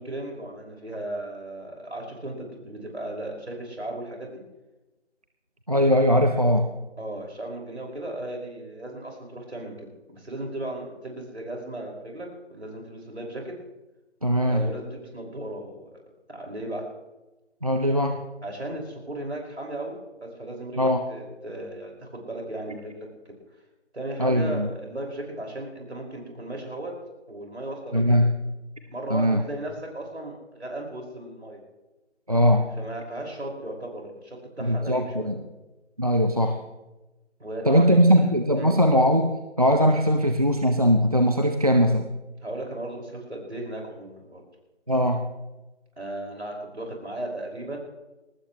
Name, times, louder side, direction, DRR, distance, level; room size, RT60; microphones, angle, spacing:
voice 1, 0.0-4.4 7.0-13.5 14.5-16.0 16.3-16.9 18.4-23.4 23.9-26.9 27.3-28.2 28.9-31.6 32.8-35.3 37.4-38.8 42.4-44.4 46.0-47.8, right 1 dB, 65° right, 0 dB, 5.6 m, -36 dB
voice 2, 5.7-6.7 14.2-14.7 17.6-18.2 20.8-21.0 24.2-24.7 27.9-28.3 29.1-29.4 32.3-32.7 34.6-35.4 36.0-36.6 37.7-42.1 44.9-45.3, equal, 30° right, 6 dB, 0.7 m, -20 dB
21.0 x 19.0 x 3.2 m, 1.1 s
figure-of-eight pair, 165°, 36 cm